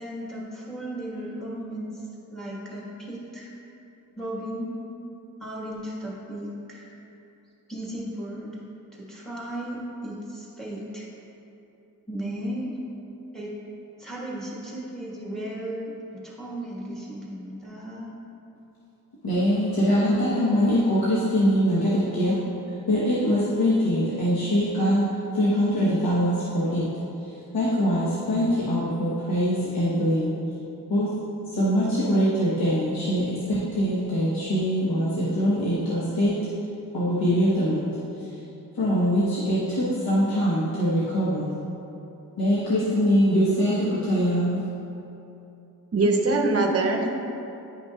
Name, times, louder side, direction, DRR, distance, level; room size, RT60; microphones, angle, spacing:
voice 1, 0.0-2.0 2.3-3.5 4.2-4.7 5.4-6.9 7.7-8.6 8.9-11.1 12.1-12.8 13.3-13.5 14.0-15.9 16.2-18.1, right 1 dB, ahead, -6 dB, 1.4 m, -35 dB
voice 2, 19.2-22.4 22.9-25.0 25.3-26.9 27.2-30.3 30.9-31.1 31.5-36.3 36.9-37.9 38.2-38.3 38.7-41.5 42.4-44.6, equal, 90° left, -9 dB, 1.2 m, -23 dB
voice 3, 45.9-47.2, right 2 dB, 45° right, 2 dB, 0.7 m, -22 dB
10.5 x 5.5 x 2.4 m, 2.9 s
wide cardioid pair, 160°, 35 cm